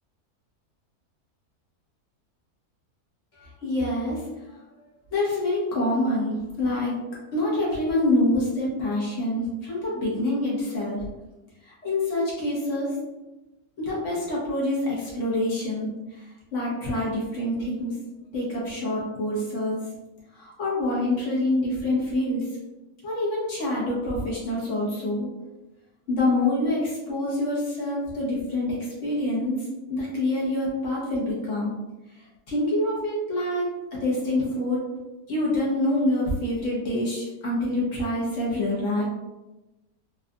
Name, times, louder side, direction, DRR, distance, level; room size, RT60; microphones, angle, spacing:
voice 1, 3.4-4.2 5.1-7.0 7.3-11.0 11.6-12.9 13.8-15.9 16.5-17.9 18.3-19.8 20.3-22.4 23.0-25.3 26.1-28.8 29.0-29.6 29.9-31.7 32.5-33.6 34.0-34.8 35.3-39.0, left 1 dB, 55° left, -5 dB, 1.3 m, -26 dB
3.8 x 2.5 x 2.3 m, 1.1 s
omnidirectional pair, 1.7 m